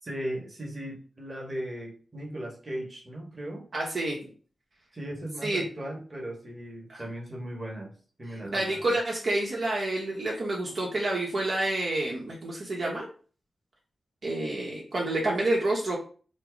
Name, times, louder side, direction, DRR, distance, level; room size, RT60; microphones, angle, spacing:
voice 1, 0.0-3.6 4.9-7.9 8.2-8.9, right 1 dB, 30° right, -1 dB, 1.4 m, -37 dB
voice 2, 3.7-4.2 5.4-5.6 6.9-7.0 8.5-13.1 14.2-16.0, right 2 dB, 55° right, -3 dB, 1.0 m, -28 dB
4.3 x 2.0 x 4.5 m, 0.40 s
wide cardioid pair, 100°, 0 cm